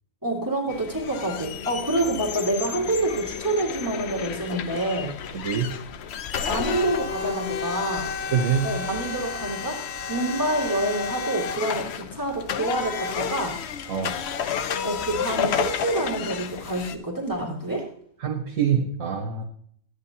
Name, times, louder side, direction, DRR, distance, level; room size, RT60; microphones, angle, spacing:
voice 1, 0.2-5.1 6.5-8.1 8.6-9.8 10.1-13.6 14.8-17.9, right 1 dB, 15° right, -2 dB, 2.2 m, -27 dB
sound 1, 0.7-17.0, left 7 dB, 60° left, 0.8 m, -31 dB
voice 2, 5.3-5.7 8.3-8.7 13.9-14.2 18.2-19.4, right 7 dB, 75° right, -1 dB, 1.5 m, -25 dB
13.0 x 9.7 x 2.8 m, 0.63 s
omnidirectional pair, 1.4 m